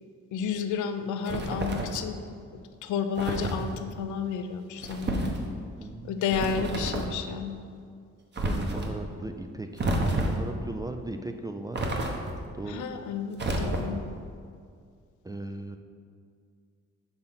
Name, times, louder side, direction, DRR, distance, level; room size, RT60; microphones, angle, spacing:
voice 1, 0.3-2.2 2.5-5.4 6.0-7.6 12.7-14.0, left 6 dB, 75° left, 8 dB, 0.5 m, -31 dB
sound 1, 1.3-2.0 3.2-3.6 4.8-5.4 6.3-7.1 8.3-8.9 9.8-10.5 11.7-12.5 13.4-14.1, right 1 dB, 35° right, 1.0 m, -29 dB
voice 2, 5.8-6.2 8.4-9.8 10.2-12.0 12.6-12.8 15.2-15.8, right 2 dB, 15° right, 5 dB, 0.3 m, -37 dB
5.9 x 3.8 x 5.7 m, 2.2 s
cardioid pair, 90°, 30 cm